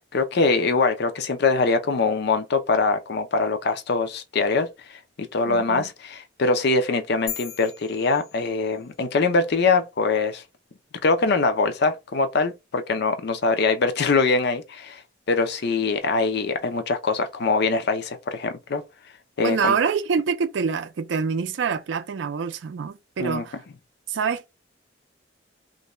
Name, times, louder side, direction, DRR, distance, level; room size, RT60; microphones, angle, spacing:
voice 1, 0.0-10.4 11.0-15.0 15.3-18.8 19.4-19.7 23.2-23.4, left 4 dB, 55° left, 0.5 m, -23 dB
voice 2, 5.5-5.9 19.4-23.6 24.1-24.5, right 6 dB, 65° right, 0.4 m, -26 dB
sound 1, 7.3-9.0, left 9 dB, 90° left, 0.7 m, -38 dB
2.5 x 2.2 x 3.0 m
head